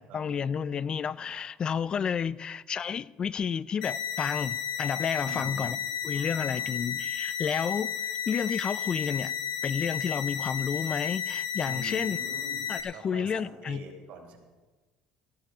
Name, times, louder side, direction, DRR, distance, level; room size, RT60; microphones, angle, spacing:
voice 1, 0.0-5.8 6.0-9.3 9.6-12.2 12.7-13.8, left 7 dB, 35° left, 0.4 m, -31 dB
sound 1, 3.8-12.8, left 8 dB, 75° left, 2.4 m, -33 dB
voice 2, 5.2-5.7 6.1-6.7 11.7-12.7 12.9-14.4, right 4 dB, 65° right, 4.1 m, -45 dB
15.5 x 12.5 x 5.1 m
supercardioid pair, 100°, 2 cm